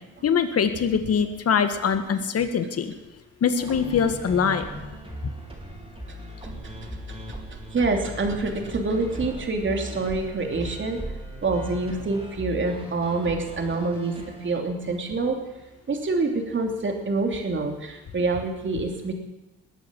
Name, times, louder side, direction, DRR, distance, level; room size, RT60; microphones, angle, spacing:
voice 1, 0.2-2.9 3.4-4.8, left 6 dB, 55° left, 8 dB, 1.7 m, -23 dB
sound 1, 3.6-14.5, right 1 dB, 20° right, 4.8 m, -38 dB
voice 2, 7.7-11.0 11.4-14.2 14.4-15.4 15.9-19.1, right 3 dB, 40° right, 3 dB, 3.0 m, -26 dB
20.5 x 8.2 x 7.6 m, 1.0 s
cardioid pair, 90°, 30 cm